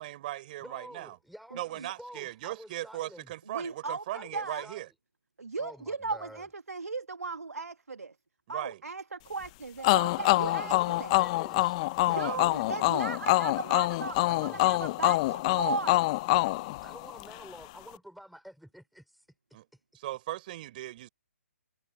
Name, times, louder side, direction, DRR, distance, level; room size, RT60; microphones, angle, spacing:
voice 1, 0.0-1.2 1.5-4.9 8.5-8.8 12.1-12.4 12.8-13.1 19.5-19.7 19.9-21.1, right 15 dB, 35° right, 4.9 m, -38 dB
voice 2, 0.6-3.3 4.1-4.8 5.6-6.4 10.4-12.9 14.2-14.9 16.8-19.2, equal, ahead, 4.3 m, -49 dB
voice 3, 1.5-1.9 3.5-4.6 5.4-8.1 8.5-11.2 12.0-16.0, right 4 dB, 90° right, 1.6 m, -37 dB
sound 1, 9.8-17.4, left 21 dB, 25° left, 0.6 m, -26 dB
hypercardioid pair, 150°, 8 cm